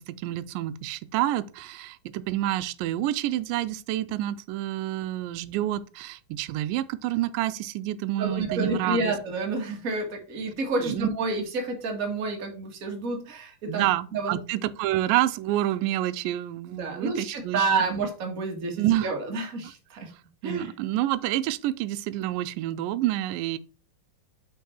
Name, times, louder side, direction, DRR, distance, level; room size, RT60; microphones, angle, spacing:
voice 1, 0.0-9.1 10.8-11.1 13.7-18.0 18.8-19.1 20.4-23.6, right 14 dB, 80° right, 2.1 m, -28 dB
voice 2, 8.2-14.4 16.7-20.1 20.4-20.7, right 3 dB, 35° right, 1.3 m, -29 dB
7.0 x 4.7 x 4.3 m
omnidirectional pair, 4.1 m